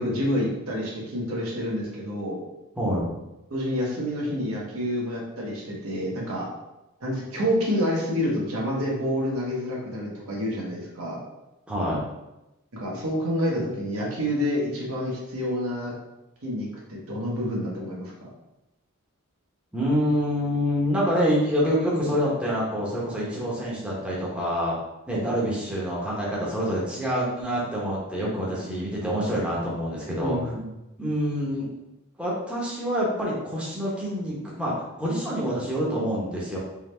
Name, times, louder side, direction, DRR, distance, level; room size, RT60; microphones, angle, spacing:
voice 1, 0.0-2.4 3.5-6.5 7.0-11.2 12.7-15.9 16.4-18.3 25.1-25.2 30.1-30.7, equal, 75° right, -3 dB, 1.1 m, -28 dB
voice 2, 11.7-12.0 19.7-24.8 25.1-30.4 31.0-31.7 32.2-36.6, equal, 5° right, -7 dB, 0.9 m, -26 dB
3.6 x 3.3 x 3.3 m, 0.95 s
head